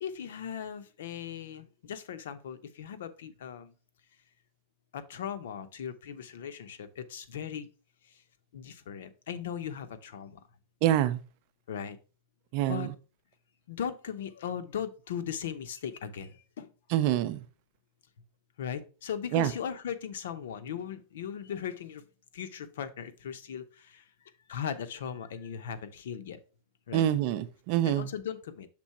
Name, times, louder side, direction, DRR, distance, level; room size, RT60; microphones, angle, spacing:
voice 1, 0.0-3.7 4.9-7.7 8.0-8.2 8.5-10.5 11.7-12.0 12.6-12.9 13.7-16.7 18.6-22.0 22.3-24.1 24.5-26.4 26.9-27.1 27.8-28.7, left 8 dB, 90° left, 0.7 m, -38 dB
voice 2, 10.8-11.2 12.5-12.9 16.9-17.4 19.3-19.5 26.9-28.1, right 12 dB, 45° right, 0.5 m, -26 dB
6.1 x 3.7 x 4.2 m
supercardioid pair, 165°, 0 cm